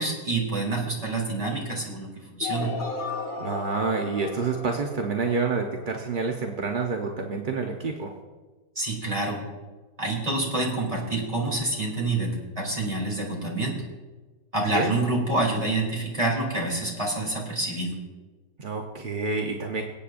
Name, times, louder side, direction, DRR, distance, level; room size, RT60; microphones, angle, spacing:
voice 1, 0.0-2.8 8.7-9.4 10.0-13.8 14.5-18.0, right 2 dB, 20° right, -2 dB, 2.8 m, -27 dB
sound 1, 2.4-6.3, left 4 dB, 60° left, 1.3 m, -35 dB
voice 2, 3.4-8.1 14.7-15.0 18.6-19.8, right 4 dB, 45° right, 2 dB, 0.7 m, -28 dB
25.0 x 8.5 x 2.5 m, 1.3 s
omnidirectional pair, 1.8 m